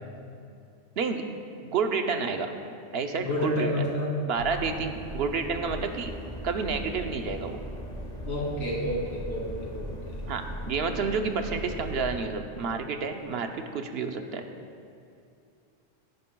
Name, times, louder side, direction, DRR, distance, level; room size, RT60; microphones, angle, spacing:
voice 1, 1.6-2.5 2.9-3.7 4.3-6.1 6.4-7.6 10.3-14.4, right 5 dB, 65° right, 6 dB, 0.9 m, -30 dB
voice 2, 3.3-4.1 8.2-9.9, equal, 85° left, -6 dB, 3.2 m, -29 dB
sound 1, 4.4-12.2, equal, 40° left, 1.3 m, -38 dB
17.0 x 10.5 x 2.3 m, 2.5 s
omnidirectional pair, 1.1 m